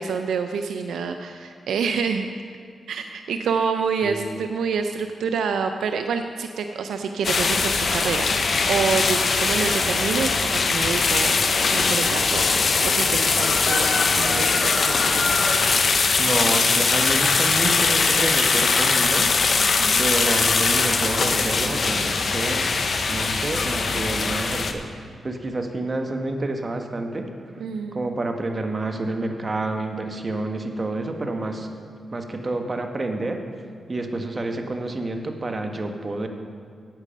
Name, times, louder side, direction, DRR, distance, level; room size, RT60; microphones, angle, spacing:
voice 1, 0.0-2.4 2.9-11.4 11.7-15.3 19.6-20.0 27.6-28.0, right 5 dB, 85° right, 7 dB, 0.4 m, -27 dB
voice 2, 4.0-4.4 16.2-19.3 20.0-22.7 23.1-27.3 27.9-31.7 32.1-33.4 33.9-36.3, right 2 dB, 40° right, 5 dB, 1.2 m, -28 dB
sound 1, 7.2-24.7, left 4 dB, 60° left, 0.8 m, -21 dB
10.5 x 8.4 x 5.2 m, 2.2 s
cardioid pair, 60°, 0 cm